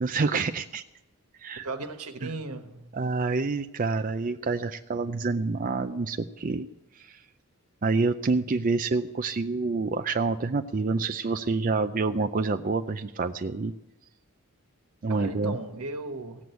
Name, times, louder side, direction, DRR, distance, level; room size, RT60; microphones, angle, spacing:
voice 1, 0.0-0.8 1.4-1.7 2.2-2.3 2.9-6.7 6.9-7.2 7.8-13.7 15.0-15.6, right 3 dB, 35° right, 0.4 m, -27 dB
voice 2, 1.6-2.9 15.1-16.4, right 2 dB, 85° right, 1.4 m, -36 dB
17.0 x 7.8 x 8.2 m
head